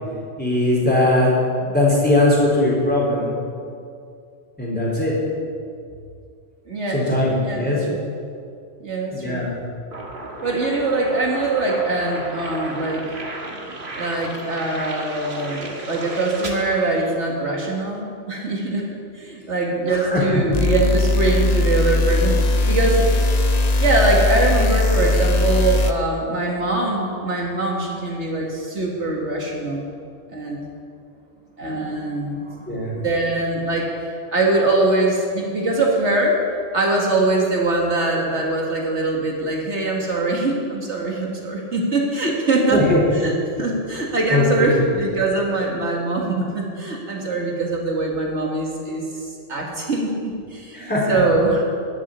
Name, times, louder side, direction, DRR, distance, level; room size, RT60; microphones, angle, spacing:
voice 1, 0.4-1.3 1.6-3.3 4.6-5.2 6.9-7.8 9.1-9.5 19.9-20.2 32.7-32.9 42.7-43.0 44.3-44.7 50.7-51.2, left 1 dB, 10° left, -5 dB, 4.1 m, -20 dB
voice 2, 6.7-7.1 7.4-8.0 8.8-9.4 10.4-13.2 14.0-23.1 23.8-29.9 30.3-30.7 31.6-32.7 32.9-33.9 34.3-36.4 36.7-51.6, right 2 dB, 70° right, -1 dB, 2.2 m, -22 dB
sound 1, 9.9-17.7, right 2 dB, 45° right, 1.9 m, -34 dB
sound 2, 20.5-25.9, left 2 dB, 40° left, 0.7 m, -19 dB
14.0 x 7.4 x 9.8 m, 2.4 s
omnidirectional pair, 1.2 m